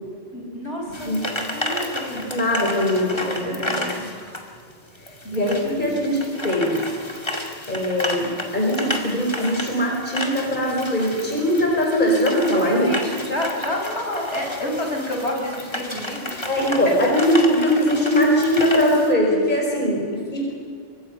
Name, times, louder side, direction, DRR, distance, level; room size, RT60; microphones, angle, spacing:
voice 1, 0.3-2.3 3.4-4.1 5.2-5.9 6.4-6.5 12.6-16.6 17.6-17.7, left 1 dB, 60° left, 0 dB, 5.8 m, -30 dB
sound 1, 0.9-19.1, left 1 dB, 20° left, 2.3 m, -32 dB
voice 2, 2.3-3.9 5.3-6.8 7.7-12.9 16.5-20.4, equal, 40° left, -1 dB, 5.2 m, -21 dB
27.5 x 24.0 x 5.6 m, 2.4 s
omnidirectional pair, 1.3 m